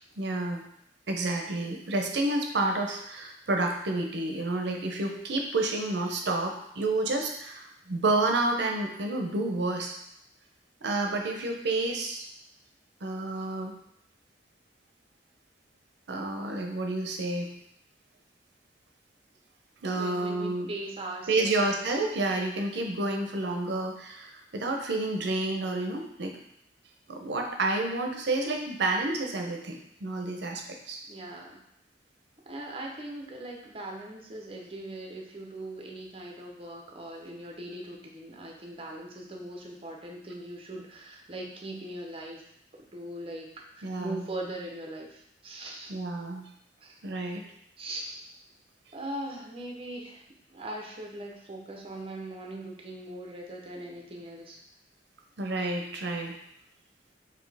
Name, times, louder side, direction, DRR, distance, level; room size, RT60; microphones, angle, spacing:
voice 1, 0.2-0.6 1.1-10.0 10.8-12.3 13.0-13.7 16.1-17.5 19.8-20.7 21.3-26.3 27.1-31.0 43.8-44.3 45.9-46.5 47.0-47.4 55.4-56.4, right 2 dB, 70° right, 2 dB, 0.6 m, -30 dB
voice 2, 19.9-21.6 31.1-31.6 32.5-42.4 42.9-43.5 43.7-45.9 46.8-47.0 47.8-48.2 48.9-50.2 50.5-54.6, right 1 dB, 30° right, 0 dB, 0.7 m, -40 dB
4.3 x 2.7 x 3.3 m, 0.74 s
head